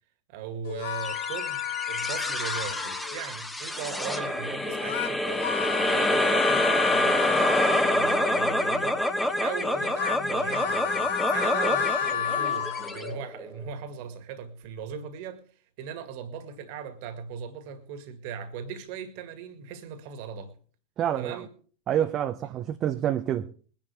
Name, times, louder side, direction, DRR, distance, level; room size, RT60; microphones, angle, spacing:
voice 1, 0.3-5.5 5.8-15.4 15.8-20.5 21.1-21.5, right 7 dB, 45° right, 2.0 m, -38 dB
sound 1, 0.6-3.2 4.6-8.3 9.6-13.2, left 11 dB, 50° left, 1.0 m, -31 dB
sound 2, 1.0-13.6, left 1 dB, 5° left, 1.2 m, -27 dB
voice 2, 21.0-21.4 21.9-23.5, right 10 dB, 30° right, 0.7 m, -27 dB
22.0 x 10.5 x 3.3 m
figure-of-eight pair, 90°, 0 cm